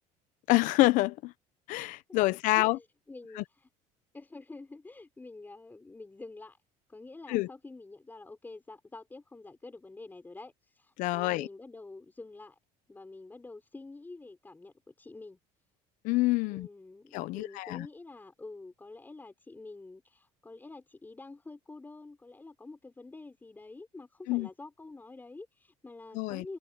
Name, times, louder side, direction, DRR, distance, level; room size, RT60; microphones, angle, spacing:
voice 1, 0.5-1.3 1.7-2.8 3.4-3.5 7.3-7.5 11.0-11.5 16.0-16.7 17.1-17.9 24.3-24.5 26.1-26.4, left 19 dB, 70° left, 1.0 m, -27 dB
voice 2, 2.6-3.7 4.1-6.6 6.9-12.6 12.9-15.4 16.5-26.6, left 3 dB, 15° left, 5.5 m, -47 dB
cardioid pair, 125°, 14 cm